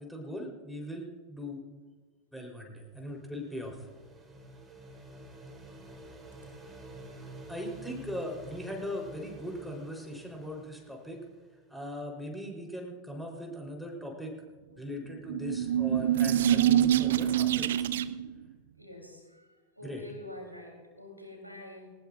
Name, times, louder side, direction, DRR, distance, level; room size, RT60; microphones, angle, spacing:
voice 1, 0.0-1.6 2.3-3.9 7.5-11.2 11.7-14.3 14.8-17.8 19.8-20.0, left 1 dB, ahead, 0 dB, 3.7 m, -39 dB
sound 1, 2.9-11.6, right 1 dB, 15° right, 5.2 m, -49 dB
sound 2, 15.1-18.3, right 11 dB, 60° right, 0.5 m, -25 dB
voice 2, 17.3-17.8 18.7-19.5 19.8-21.9, left 1 dB, 90° right, 1 dB, 3.4 m, -47 dB
19.5 x 19.0 x 2.5 m, 1.4 s
figure-of-eight pair, 90°, 0 cm